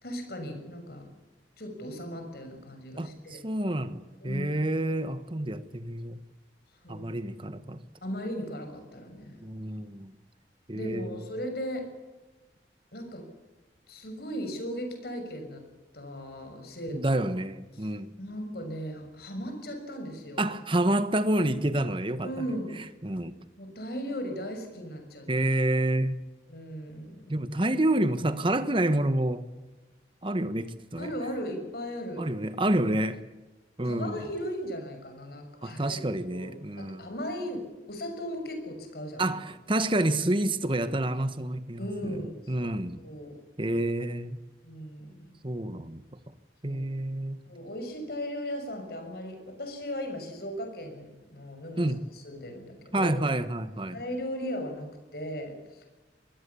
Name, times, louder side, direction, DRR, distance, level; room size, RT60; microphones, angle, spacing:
voice 1, 0.0-1.1 1.6-3.4 4.2-4.5 6.8-7.1 8.0-9.4 10.7-11.9 12.9-13.2 13.9-15.6 15.9-17.2 17.8-17.9 18.2-20.4 22.2-22.8 23.6-25.3 26.5-27.3 31.0-32.3 33.8-36.0 36.3-36.5 36.8-39.4 41.8-42.7 43.0-43.4 44.6-45.1 46.6-46.8 47.5-53.4 53.9-55.8, equal, 60° left, 5 dB, 6.4 m, -37 dB
voice 2, 3.0-6.2 6.9-7.8 9.4-10.1 10.7-11.3 16.9-18.1 20.4-22.4 23.0-23.3 25.3-26.2 27.3-29.4 30.2-31.1 32.2-33.2 33.8-34.2 35.6-37.1 39.2-42.2 42.5-43.0 43.6-44.4 45.4-46.0 46.6-47.4 51.8-52.0 52.9-54.0, right 1 dB, 30° right, 11 dB, 1.3 m, -28 dB
25.5 x 20.0 x 7.1 m, 1.1 s
head